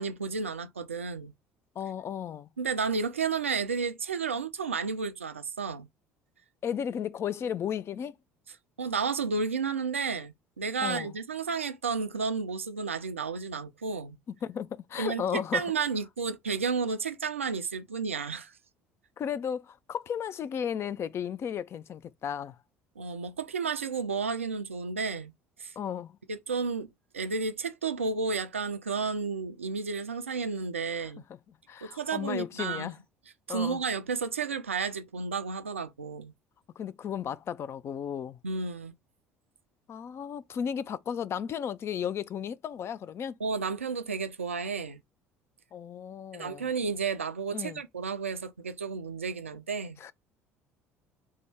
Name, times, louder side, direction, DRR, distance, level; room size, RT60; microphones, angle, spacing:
voice 1, 0.0-1.3 2.6-5.9 8.8-14.2 15.0-15.2 15.5-18.5 23.0-25.3 25.6-25.7 26.3-26.9 27.1-31.2 31.8-32.9 33.5-36.3 38.4-38.9 43.4-45.0 46.3-50.0, right 5 dB, 90° right, 0.4 m, -32 dB
voice 2, 1.8-2.5 6.6-8.2 10.8-11.2 14.4-15.6 19.2-22.6 25.8-26.2 31.0-33.0 33.5-33.8 36.8-38.4 39.9-43.4 45.7-46.7 47.5-47.8 50.0-50.1, left 8 dB, 40° left, 0.4 m, -34 dB
3.4 x 2.2 x 3.4 m
figure-of-eight pair, 60°, 7 cm